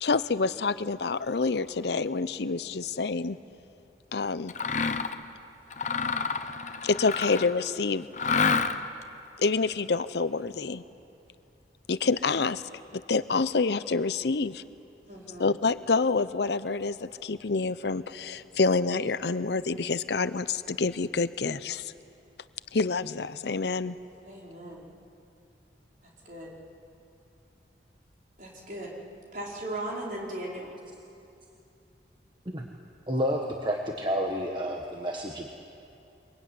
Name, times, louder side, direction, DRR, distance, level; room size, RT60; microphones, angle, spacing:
voice 1, 0.0-3.4 4.1-4.5 6.8-8.1 9.4-10.8 11.9-12.6 12.9-14.6 15.4-21.9 22.7-24.0, left 4 dB, 70° left, 14 dB, 0.7 m, -27 dB
Mechanisms, 4.5-5.2 5.7-7.6 8.1-9.0, left 5 dB, 40° left, 0.9 m, -28 dB
voice 2, 15.1-15.5 24.2-24.9 26.2-26.5 28.4-28.9 29.3-30.7, right 1 dB, 45° right, -3 dB, 4.9 m, -37 dB
voice 3, 33.1-35.5, equal, 25° right, 1 dB, 1.4 m, -30 dB
23.5 x 23.0 x 9.5 m, 2.7 s
head